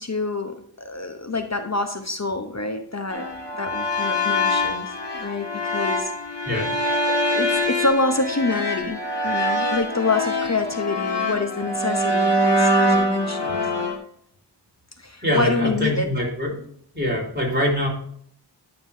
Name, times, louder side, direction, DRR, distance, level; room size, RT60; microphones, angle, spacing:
voice 1, 0.0-3.3 3.5-6.5 6.8-14.0 15.0-16.1, left 3 dB, 40° left, 7 dB, 0.8 m, -27 dB
sound 1, 3.1-14.0, left 1 dB, 80° left, 1.7 m, -24 dB
voice 2, 15.2-16.6 16.9-17.9, left 1 dB, 25° right, -3 dB, 3.9 m, -23 dB
11.0 x 6.8 x 2.7 m, 0.63 s
wide cardioid pair, 45°, 42 cm